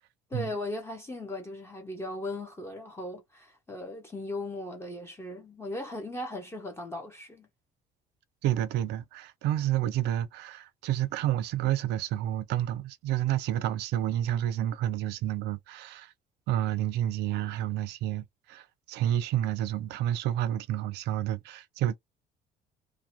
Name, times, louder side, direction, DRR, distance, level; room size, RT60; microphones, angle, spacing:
voice 1, 0.3-7.5, left 1 dB, 15° left, 0.6 m, -38 dB
voice 2, 8.4-16.1 16.5-21.9, right 12 dB, 80° right, 0.5 m, -30 dB
2.6 x 2.1 x 2.8 m
cardioid pair, 110°, 17 cm